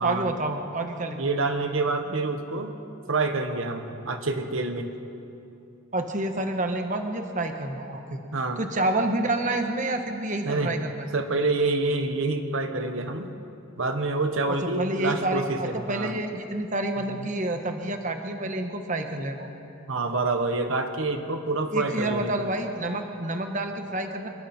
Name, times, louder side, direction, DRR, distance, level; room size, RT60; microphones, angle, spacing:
voice 1, 0.0-1.3 5.9-8.2 8.6-11.1 14.5-19.5 21.7-24.3, right 2 dB, 40° right, 4 dB, 1.4 m, -28 dB
voice 2, 1.2-2.7 3.1-4.9 8.3-8.6 10.4-10.7 11.1-13.4 13.8-16.1 17.2-17.3 19.9-22.3, right 3 dB, 75° right, 6 dB, 1.3 m, -27 dB
26.5 x 23.0 x 4.4 m, 2.8 s
head